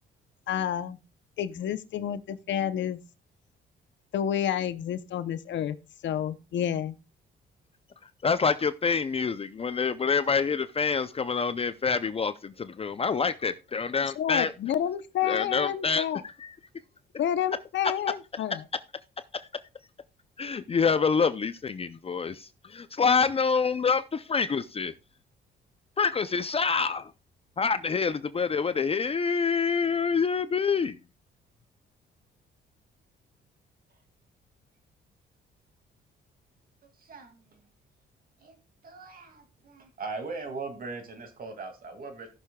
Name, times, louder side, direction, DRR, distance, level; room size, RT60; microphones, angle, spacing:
voice 1, 0.5-1.0 1.4-3.0 4.1-5.8 6.0-7.0 14.2-16.2 17.2-18.6, left 10 dB, 65° left, 0.7 m, -29 dB
voice 2, 8.2-14.5 15.2-16.0 16.4-16.5 19.3-19.5 20.4-24.9 26.0-27.1 27.6-31.0, left 5 dB, 30° left, 0.5 m, -26 dB
voice 3, 37.0-37.6 38.4-38.6 38.8-42.3, right 4 dB, 45° right, 2.3 m, -40 dB
17.5 x 6.5 x 2.3 m
cardioid pair, 90°, 20 cm